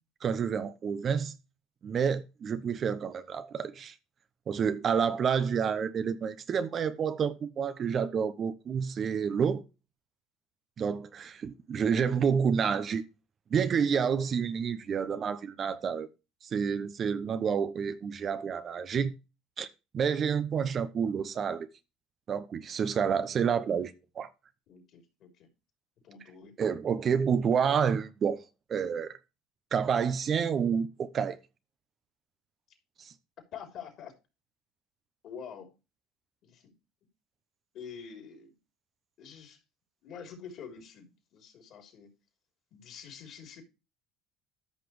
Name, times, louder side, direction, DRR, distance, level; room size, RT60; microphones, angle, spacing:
voice 1, 0.2-1.4 1.8-4.0 4.5-9.6 10.8-13.0 13.5-16.1 16.4-19.2 19.6-19.7 19.9-21.7 22.3-24.3 26.6-28.4 28.7-29.2 29.7-31.4 33.0-33.1, right 7 dB, 40° right, 0.9 m, -29 dB
voice 2, 24.7-25.5 26.0-26.6 33.5-34.1 35.2-35.7 36.4-36.7 37.7-38.5 39.2-39.6 40.0-42.1 42.7-43.6, left 7 dB, 55° left, 3.5 m, -46 dB
13.5 x 5.9 x 3.3 m
hypercardioid pair, 70°, 0 cm